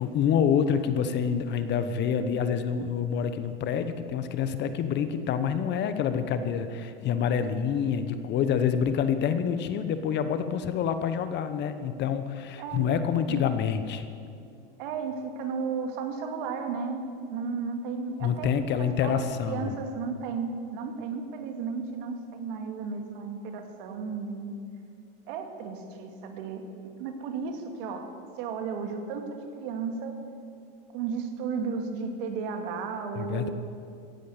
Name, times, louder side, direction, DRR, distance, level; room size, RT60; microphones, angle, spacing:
voice 1, 0.0-14.1 18.2-19.7 33.1-33.5, left 7 dB, 35° left, 10 dB, 1.1 m, -27 dB
voice 2, 14.8-24.5 25.3-28.1 28.4-30.2 30.9-33.5, right 5 dB, 65° right, 5 dB, 2.3 m, -34 dB
16.0 x 10.5 x 8.2 m, 2.4 s
supercardioid pair, 125°, 29 cm